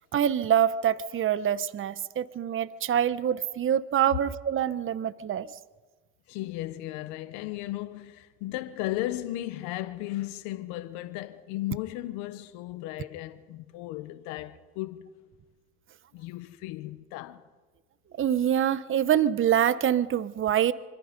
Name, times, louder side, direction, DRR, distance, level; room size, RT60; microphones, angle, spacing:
voice 1, 0.1-5.5 18.2-20.7, right 10 dB, 45° right, 0.9 m, -25 dB
voice 2, 6.3-15.1 16.1-17.4, left 15 dB, 90° left, 1.2 m, -35 dB
26.0 x 25.5 x 5.3 m
supercardioid pair, 85°, 29 cm